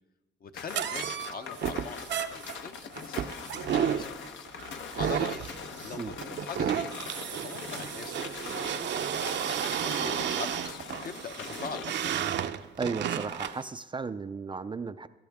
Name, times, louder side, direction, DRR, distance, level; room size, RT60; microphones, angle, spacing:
voice 1, 0.4-4.1 5.0-5.4 5.8-7.0 7.4-9.3 9.8-12.2, left 5 dB, 50° left, 8 dB, 0.9 m, -42 dB
sound 1, 0.5-11.9, left 6 dB, 70° left, 1.0 m, -42 dB
sound 2, 0.7-13.6, right 9 dB, 65° right, 0.7 m, -32 dB
voice 2, 12.8-15.1, right 4 dB, 25° right, 11 dB, 0.4 m, -35 dB
18.0 x 12.5 x 3.5 m, 1.2 s
cardioid pair, 90°, 20 cm